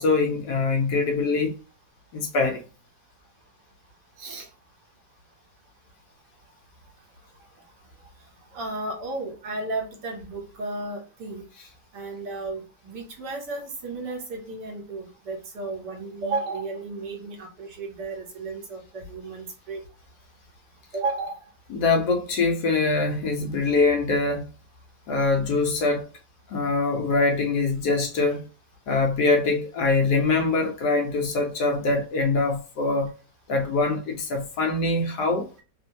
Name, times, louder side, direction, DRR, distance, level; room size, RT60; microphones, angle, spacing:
voice 1, 0.0-1.6 2.1-2.6 21.7-24.5 25.1-26.1 26.5-28.5 28.9-33.1 33.5-35.5, left 3 dB, 70° left, 1.1 m, -23 dB
voice 2, 8.5-11.4 11.9-19.8 20.9-21.4, right 3 dB, 70° right, 1.4 m, -33 dB
3.1 x 2.1 x 2.6 m
omnidirectional pair, 2.0 m